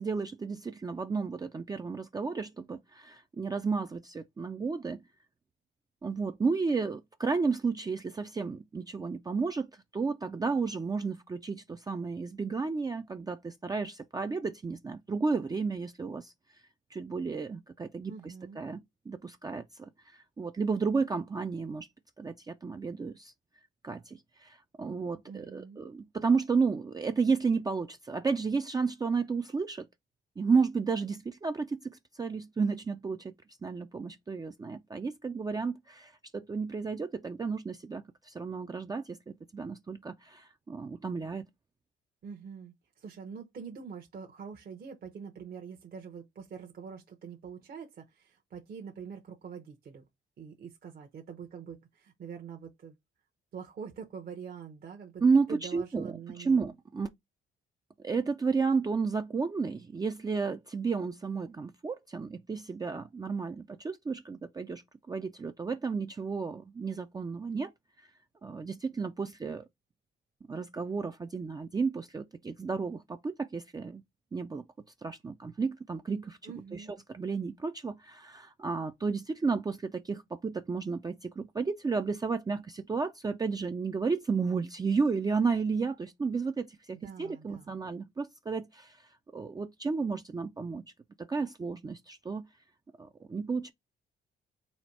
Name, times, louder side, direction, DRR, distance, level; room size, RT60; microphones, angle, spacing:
voice 1, 0.0-5.0 6.0-16.3 16.9-18.8 19.1-21.9 22.2-23.3 23.8-29.9 30.4-33.4 33.6-41.5 55.2-57.1 58.0-64.8 65.1-67.7 68.4-69.6 70.5-74.0 74.3-74.6 75.0-89.0 89.3-90.8 91.3-92.5 93.0-93.7, right 4 dB, 20° right, 0.4 m, -32 dB
voice 2, 18.1-18.6 25.3-25.8 42.2-50.1 50.4-53.0 53.5-55.2 55.5-56.7 76.4-76.9 86.9-87.8, right 6 dB, 50° right, 0.8 m, -45 dB
4.2 x 2.2 x 4.4 m
cardioid pair, 90°, 20 cm